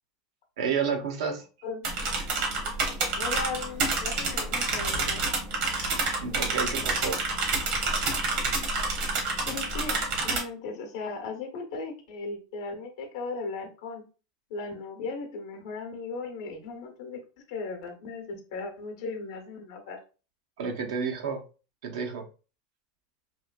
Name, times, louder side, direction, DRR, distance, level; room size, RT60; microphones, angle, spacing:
voice 1, 0.6-1.4 6.2-7.2 20.6-21.4 21.8-22.2, right 6 dB, 80° right, 3 dB, 0.7 m, -30 dB
sound 1, 1.8-10.4, right 3 dB, 55° right, 1.0 m, -28 dB
voice 2, 3.2-5.2 9.1-14.0 14.5-17.2 17.5-20.0, left 4 dB, 75° left, 4 dB, 0.8 m, -37 dB
3.0 x 2.5 x 2.2 m, 0.34 s
supercardioid pair, 130°, 3 cm